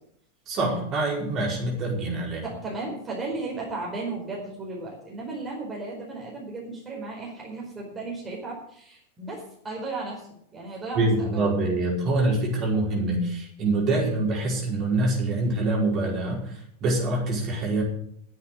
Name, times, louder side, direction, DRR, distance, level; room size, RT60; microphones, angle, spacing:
voice 1, 0.5-2.4 11.0-17.8, right 2 dB, 30° right, -2 dB, 5.2 m, -25 dB
voice 2, 2.4-11.4, right 3 dB, 15° right, -3 dB, 4.7 m, -35 dB
11.0 x 8.1 x 9.1 m, 0.67 s
figure-of-eight pair, 90°, 0 cm